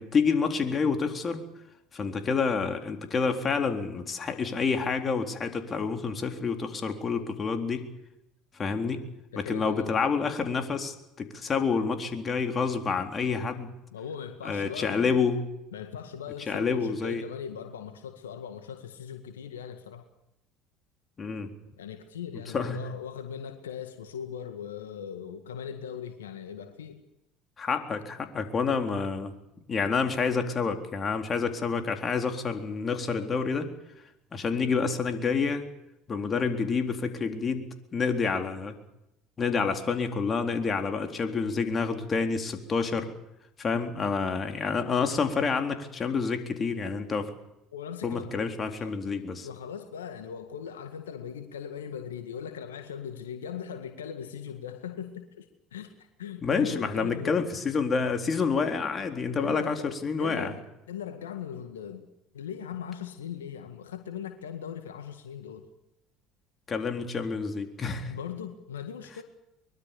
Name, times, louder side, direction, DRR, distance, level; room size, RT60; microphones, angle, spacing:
voice 1, 0.0-1.4 1.9-7.9 8.6-9.0 9.4-13.7 14.4-15.4 16.5-17.2 21.2-21.5 22.5-22.8 27.6-29.3 29.7-33.7 34.3-35.7 36.1-37.7 37.9-38.8 39.4-43.1 43.6-47.3 48.0-49.5 56.4-60.5 66.7-68.1, left 5 dB, 35° left, 6 dB, 3.9 m, -28 dB
voice 2, 9.3-9.9 13.9-15.2 15.7-20.1 21.8-27.0 47.7-48.3 48.7-48.9 49.4-57.4 59.4-59.9 60.2-62.1 62.3-65.7 68.1-69.2, left 8 dB, 85° left, 7 dB, 1.9 m, -39 dB
23.5 x 22.5 x 7.0 m, 0.85 s
hypercardioid pair, 65°, 0 cm